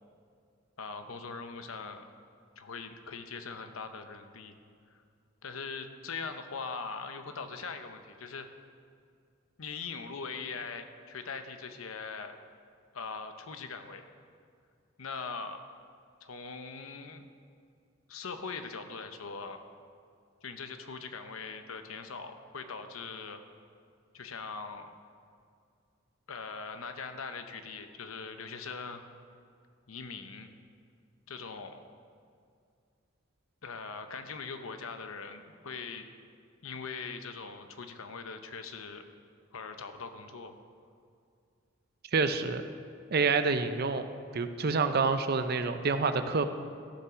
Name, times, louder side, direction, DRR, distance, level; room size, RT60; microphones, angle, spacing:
voice 1, 0.8-2.0 2.6-4.6 5.4-8.5 9.6-12.4 12.9-14.0 15.0-15.6 16.2-17.3 18.1-19.6 20.4-23.4 24.1-24.9 26.3-29.0 29.9-30.5 31.3-31.8 33.6-36.0 36.6-39.0 39.5-40.5, left 5 dB, 90° left, 8 dB, 0.8 m, -41 dB
voice 2, 42.1-42.6 43.1-44.0 44.3-46.4, right 4 dB, 50° right, 9 dB, 0.6 m, -27 dB
14.5 x 5.7 x 6.2 m, 2.3 s
head